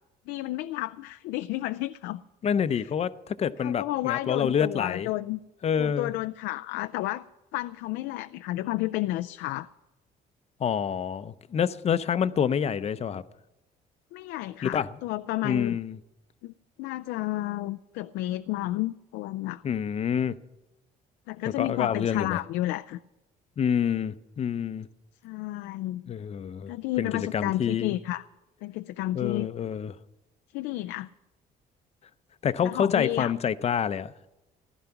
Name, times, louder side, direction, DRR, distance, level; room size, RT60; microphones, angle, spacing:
voice 1, 0.3-2.2 3.6-5.4 5.8-7.3 7.5-9.7 14.1-15.8 16.4-16.5 16.8-19.6 21.3-23.0 25.2-26.1 26.7-28.2 28.6-29.5 30.5-31.1 32.6-33.3, left 17 dB, 90° left, 10 dB, 0.4 m, -31 dB
voice 2, 2.4-5.1 5.6-6.1 10.6-13.2 14.6-14.9 15.4-16.0 19.6-20.3 21.6-22.4 23.6-24.9 26.1-27.9 29.1-30.0 32.4-34.1, left 8 dB, 40° left, 14 dB, 0.6 m, -27 dB
15.0 x 12.0 x 5.8 m, 1.0 s
cardioid pair, 110°, 17 cm